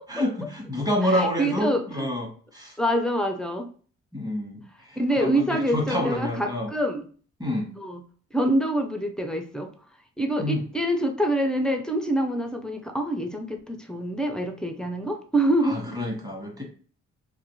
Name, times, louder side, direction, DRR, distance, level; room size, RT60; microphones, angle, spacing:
voice 1, 0.1-2.8 4.1-6.7 7.4-7.7 10.4-10.6 15.6-16.6, left 1 dB, 15° right, 0 dB, 1.0 m, -28 dB
voice 2, 1.0-2.1 2.8-3.7 5.0-7.1 7.8-8.0 8.3-9.7 10.2-16.0, right 1 dB, 5° left, 5 dB, 0.4 m, -26 dB
2.6 x 2.4 x 3.0 m, 0.42 s
cardioid pair, 90°, 30 cm